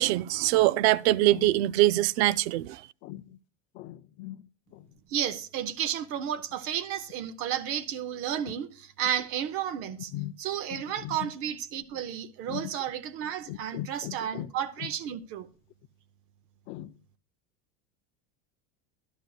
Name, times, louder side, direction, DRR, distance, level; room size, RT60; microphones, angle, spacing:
voice 1, 0.0-2.8, right 15 dB, 85° right, 0.5 m, -23 dB
voice 2, 3.8-4.4 10.1-10.3 12.5-12.6 13.5-14.5 16.7-16.9, left 14 dB, 40° left, 0.4 m, -38 dB
voice 3, 5.1-10.1 10.4-15.5, right 10 dB, 45° right, 0.7 m, -32 dB
12.5 x 12.0 x 2.3 m
cardioid pair, 160°, 32 cm